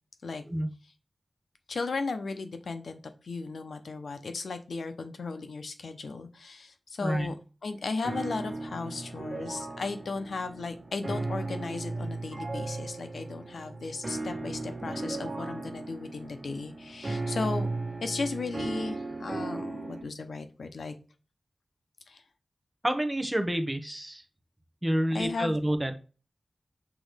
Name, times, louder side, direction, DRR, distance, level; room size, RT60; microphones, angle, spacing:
voice 1, 1.7-7.3 7.6-17.7 18.0-21.0 22.1-22.2 25.1-25.6, left 3 dB, 85° left, 8 dB, 0.8 m, -35 dB
sound 1, 8.0-20.0, right 2 dB, 45° right, 1.6 m, -36 dB
voice 2, 22.8-24.2 24.8-25.9, right 1 dB, 10° right, 7 dB, 0.9 m, -28 dB
6.1 x 3.1 x 5.0 m, 0.34 s
wide cardioid pair, 105°, 0 cm